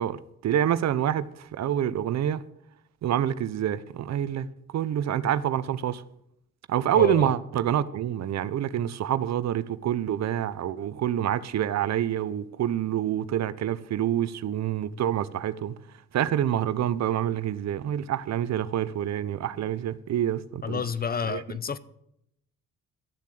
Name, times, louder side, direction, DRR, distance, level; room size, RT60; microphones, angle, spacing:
voice 1, 0.0-2.4 3.0-6.0 6.7-15.7 16.1-20.8 21.3-21.4, right 10 dB, 60° right, 0.8 m, -27 dB
voice 2, 7.0-7.3 20.6-21.8, left 6 dB, 30° left, 0.8 m, -30 dB
13.5 x 7.3 x 7.7 m
cardioid pair, 90°, 30 cm